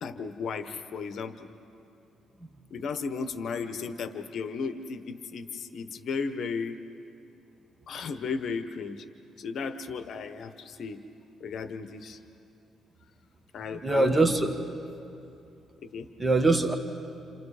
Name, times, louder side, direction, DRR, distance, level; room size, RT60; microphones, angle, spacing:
voice 1, 0.0-1.5 2.7-6.8 7.9-9.0 9.4-11.0 11.4-12.2 13.5-14.1 15.8-16.1, left 5 dB, 65° left, 9 dB, 1.2 m, -35 dB
voice 2, 13.8-14.5 16.2-16.7, right 2 dB, 20° right, 5 dB, 1.9 m, -22 dB
29.5 x 28.5 x 5.1 m, 2.7 s
cardioid pair, 90°, 0 cm